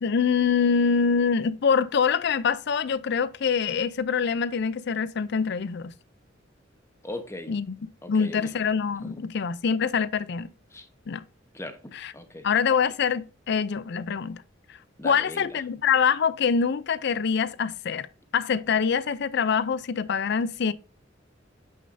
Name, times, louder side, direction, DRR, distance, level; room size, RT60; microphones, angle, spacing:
voice 1, 0.0-5.9 7.5-7.8 8.1-10.5 11.1-11.2 11.9-12.1 12.4-14.4 15.0-18.1 18.3-20.7, left 6 dB, 65° left, 0.5 m, -25 dB
voice 2, 7.0-7.5 8.0-8.5 9.0-9.2 10.7-10.9 11.5-12.5 15.0-15.5, left 1 dB, 15° left, 0.9 m, -39 dB
8.7 x 6.4 x 2.6 m
head